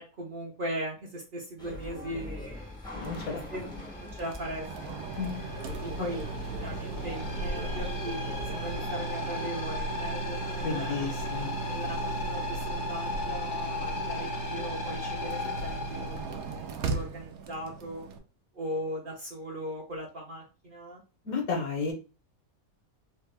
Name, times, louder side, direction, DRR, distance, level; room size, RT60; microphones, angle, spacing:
voice 1, 0.0-2.8 3.5-3.7 4.0-4.9 5.7-11.1 11.7-18.0 18.5-21.0 21.6-21.7, equal, 50° right, -2 dB, 0.7 m, -39 dB
sound 1, 1.6-8.8, left 1 dB, 5° left, 0.4 m, -42 dB
sound 2, 2.5-17.1, left 4 dB, 50° left, 0.6 m, -38 dB
voice 2, 2.9-3.4 3.6-3.8 5.2-5.4 6.0-6.1 10.6-11.5 21.2-21.9, left 5 dB, 80° left, 2 dB, 1.4 m, -33 dB
sound 3, 3.0-18.2, right 3 dB, 85° right, 1.1 m, -37 dB
3.3 x 2.2 x 3.2 m, 0.34 s
omnidirectional pair, 1.5 m